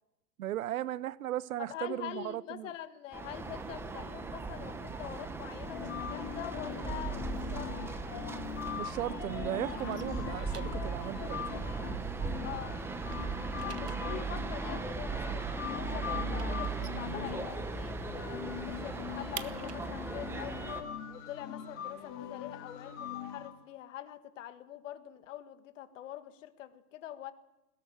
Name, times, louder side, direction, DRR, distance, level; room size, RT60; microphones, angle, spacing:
voice 1, 0.4-2.7 8.8-11.4, right 13 dB, 65° right, 0.8 m, -36 dB
voice 2, 1.6-7.7 12.4-12.8 13.6-20.7 21.1-27.3, left 12 dB, 55° left, 1.8 m, -45 dB
sound 1, 3.1-20.8, right 4 dB, 5° right, 0.8 m, -38 dB
sound 2, 5.6-23.5, left 9 dB, 30° left, 3.6 m, -42 dB
sound 3, 9.6-12.6 12.8-17.9 18.2-18.3 18.6-22.3, right 9 dB, 90° right, 1.5 m, -51 dB
20.0 x 17.0 x 7.7 m
hypercardioid pair, 145°, 46 cm